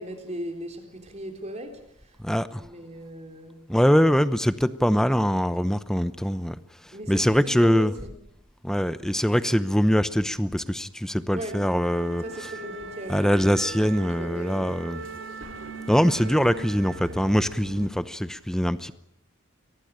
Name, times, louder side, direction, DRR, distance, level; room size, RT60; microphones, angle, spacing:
voice 1, 0.0-1.9 2.5-3.6 6.9-8.1 11.3-11.7 12.2-13.9 14.2-14.8, equal, 30° right, 3.5 m, -38 dB
voice 2, 2.2-2.6 3.7-6.6 7.1-7.9 8.6-12.5 13.1-15.0 15.9-18.9, equal, 5° left, 0.8 m, -23 dB
sound 1, 11.4-17.9, right 3 dB, 70° right, 2.5 m, -40 dB
23.5 x 18.5 x 8.9 m
head